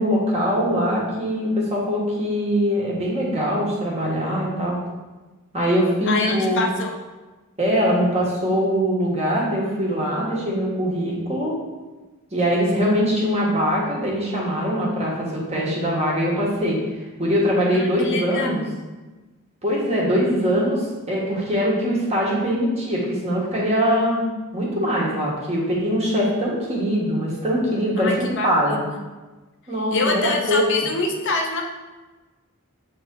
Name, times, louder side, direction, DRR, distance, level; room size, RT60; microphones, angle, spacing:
voice 1, 0.0-4.8 5.5-6.6 7.6-11.5 12.3-16.8 17.2-18.6 19.6-24.2 24.5-28.8 29.7-30.6, equal, 30° right, -4 dB, 1.4 m, -22 dB
voice 2, 6.1-6.9 17.7-18.6 28.0-29.0 29.9-31.6, left 3 dB, 55° left, 1 dB, 0.7 m, -25 dB
7.2 x 3.7 x 3.7 m, 1.2 s
head